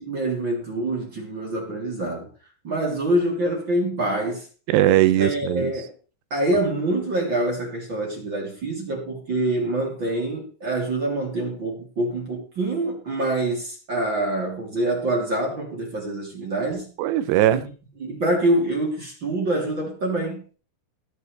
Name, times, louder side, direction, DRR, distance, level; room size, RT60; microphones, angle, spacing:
voice 1, 0.0-2.3 2.6-4.4 5.2-5.9 6.3-17.0 17.5-17.6 18.0-20.6, right 1 dB, 30° right, 3.0 m, -25 dB
voice 2, 4.7-5.7 17.0-17.6, right 13 dB, 85° right, 2.4 m, -19 dB
20.0 x 8.1 x 3.4 m
omnidirectional pair, 5.7 m